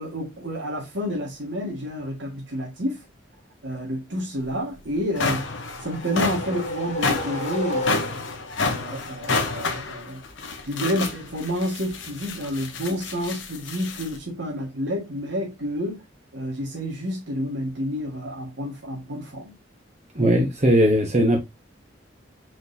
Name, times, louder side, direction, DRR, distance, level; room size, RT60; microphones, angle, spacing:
voice 1, 0.0-3.0 3.6-5.5 5.8-8.2 8.6-10.2 10.7-16.0 16.3-19.5, equal, 70° right, 1.6 m, -29 dB
sound 1, 4.4-4.5 4.9-14.2, left 3 dB, 80° left, 1.0 m, -29 dB
sound 2, 5.4-8.5, left 1 dB, 35° left, 1.4 m, -32 dB
voice 2, 20.2-21.4, equal, 35° right, 0.9 m, -18 dB
4.7 x 4.0 x 2.7 m
head